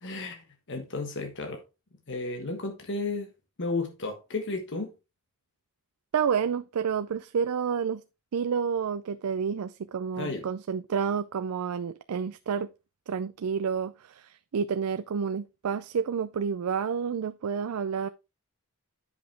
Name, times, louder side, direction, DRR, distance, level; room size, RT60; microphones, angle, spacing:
voice 1, 0.0-1.6 2.1-3.3 3.6-4.9 10.1-10.4, left 3 dB, 55° left, 1.4 m, -33 dB
voice 2, 6.1-8.0 8.3-12.7 13.1-18.1, right 6 dB, 75° right, 0.4 m, -29 dB
9.9 x 5.6 x 3.3 m
head